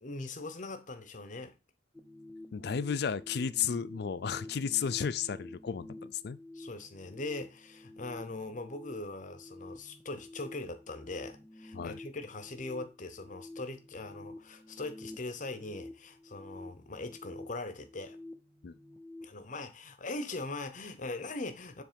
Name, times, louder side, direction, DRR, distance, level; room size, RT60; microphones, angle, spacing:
voice 1, 0.0-1.5 6.5-18.2 19.2-21.8, left 2 dB, 45° left, 0.8 m, -41 dB
sound 1, 1.9-19.2, left 1 dB, ahead, 0.7 m, -49 dB
voice 2, 2.5-6.4 11.7-12.0 18.6-18.7, left 7 dB, 60° left, 0.4 m, -33 dB
7.4 x 3.3 x 5.1 m
head